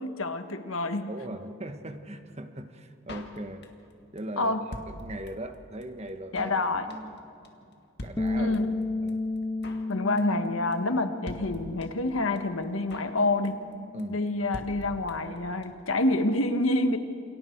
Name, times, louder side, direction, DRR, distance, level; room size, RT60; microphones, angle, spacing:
voice 1, 0.0-1.1 4.4-4.6 6.3-6.9 8.4-8.7 9.9-13.6 14.1-17.0, left 2 dB, 85° left, 7 dB, 1.5 m, -27 dB
voice 2, 1.1-3.6 4.1-6.5 6.9-7.2 7.6-8.6 9.0-9.2 13.9-14.5, right 1 dB, 30° right, 7 dB, 1.3 m, -40 dB
Drum kit, 3.1-3.9 4.2-4.3 4.4-5.5 5.8-5.9 6.1-6.6 6.9-7.2 7.4-7.5 7.7-7.8 8.0-8.8 9.1-9.2 9.4-9.9 10.2-10.5 10.7-10.8 11.0-11.1 11.3-12.1 12.4-12.5 12.6-13.2 13.4-13.7 14.0-14.1 14.3-14.4 14.5-15.4 15.6-15.7 15.9-16.0, left 1 dB, 55° left, 2.0 m, -42 dB
Bass guitar, 8.2-14.4, left 2 dB, 15° left, 0.5 m, -34 dB
29.0 x 28.5 x 4.6 m, 2.5 s
head